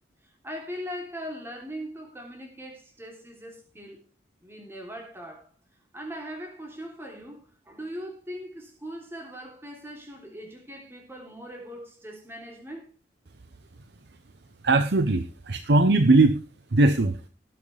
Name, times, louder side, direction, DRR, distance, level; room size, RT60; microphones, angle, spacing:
voice 1, 0.4-4.0 4.4-5.5 5.9-12.9, equal, 15° right, 3.2 m, -40 dB
voice 2, 14.6-16.4 16.7-17.2, right 2 dB, 65° right, 0.8 m, -20 dB
19.0 x 7.8 x 3.4 m
head